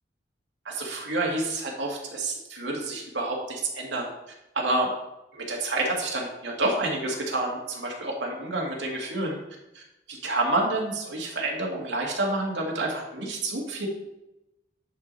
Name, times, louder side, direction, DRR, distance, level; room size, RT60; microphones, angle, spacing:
voice 1, 0.7-4.1 4.6-4.9 5.3-9.4 9.7-9.8 10.1-13.9, right 2 dB, 90° right, -1 dB, 2.1 m, -28 dB
10.5 x 4.8 x 4.1 m, 0.92 s
head